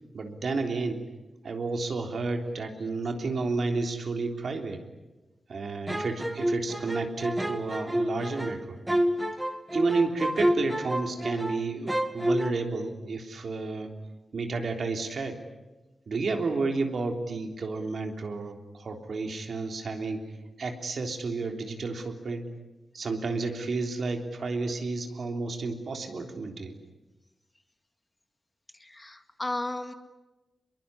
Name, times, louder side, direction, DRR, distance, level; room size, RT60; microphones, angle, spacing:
voice 1, 0.1-1.0 1.4-4.8 5.5-8.8 9.7-13.9 14.3-15.4 16.1-20.3 20.6-22.5 22.9-26.8, right 3 dB, 65° right, 4 dB, 3.5 m, -31 dB
sound 1, 5.9-11.6 11.9-12.5, equal, 10° right, 1.7 m, -29 dB
voice 2, 28.7-29.9, left 2 dB, 20° left, 8 dB, 2.0 m, -34 dB
25.5 x 22.5 x 9.8 m, 1.1 s
wide cardioid pair, 95°, 0 cm